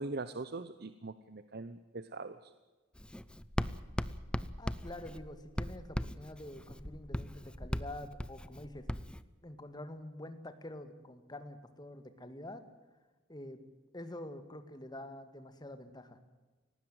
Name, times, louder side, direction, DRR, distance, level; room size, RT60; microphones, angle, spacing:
voice 1, 0.0-2.5, right 3 dB, 50° right, 12 dB, 0.9 m, -42 dB
Writing, 2.9-9.2, equal, 5° left, 0.6 m, -39 dB
voice 2, 4.6-8.9 9.4-12.6 13.3-13.6 13.9-16.2, left 1 dB, 20° left, 9 dB, 2.0 m, -47 dB
19.0 x 16.5 x 9.0 m, 1.2 s
head